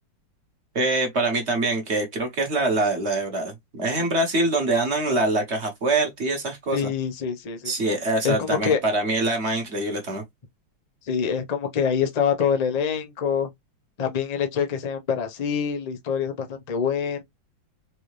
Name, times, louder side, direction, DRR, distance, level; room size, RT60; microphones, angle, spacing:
voice 1, 0.7-6.9 7.6-10.2, right 2 dB, 45° right, 1.1 m, -24 dB
voice 2, 6.7-7.7 8.2-8.8 11.1-13.5 14.0-17.2, left 7 dB, 65° left, 0.4 m, -25 dB
4.5 x 2.7 x 3.1 m
omnidirectional pair, 2.0 m